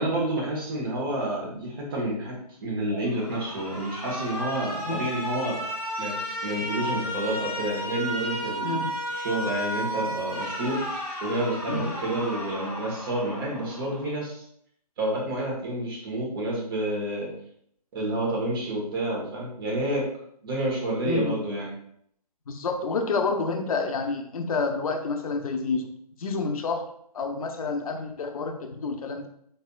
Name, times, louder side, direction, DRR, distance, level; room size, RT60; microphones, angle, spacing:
voice 1, 0.0-5.6 6.0-6.1 6.4-8.8 9.1-14.4 15.0-17.3 17.9-20.0 20.4-21.7, right 1 dB, 35° right, -2 dB, 1.2 m, -29 dB
Alarm, 3.1-14.1, equal, 5° right, 0.5 m, -33 dB
voice 2, 22.5-25.9 26.2-26.9 27.1-29.3, left 4 dB, 60° left, 5 dB, 0.6 m, -29 dB
4.0 x 3.3 x 2.2 m, 0.68 s
hypercardioid pair, 150°, 20 cm